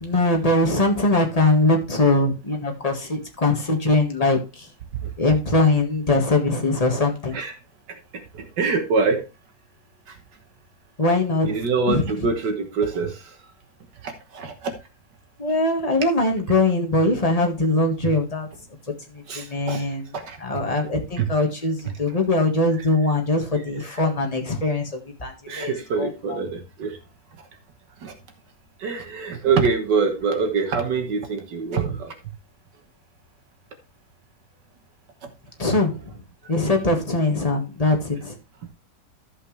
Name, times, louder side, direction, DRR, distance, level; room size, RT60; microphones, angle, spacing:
voice 1, 0.0-4.7 5.2-7.4 11.0-11.5 11.9-12.0 15.4-18.5 19.1-20.0 20.4-25.7 26.0-26.4 35.6-36.1 36.5-38.3, left 2 dB, 20° left, 3 dB, 1.6 m, -22 dB
voice 2, 7.9-9.3 10.1-10.2 11.4-13.4 14.0-14.8 18.0-18.1 19.3-19.8 20.1-20.6 21.2-21.3 22.1-22.2 23.5-24.0 25.5-27.0 27.4-27.5 28.0-28.1 28.8-32.1 36.4-36.5, right 4 dB, 75° right, 6 dB, 1.8 m, -25 dB
13.0 x 5.9 x 3.3 m, 0.28 s
omnidirectional pair, 1.9 m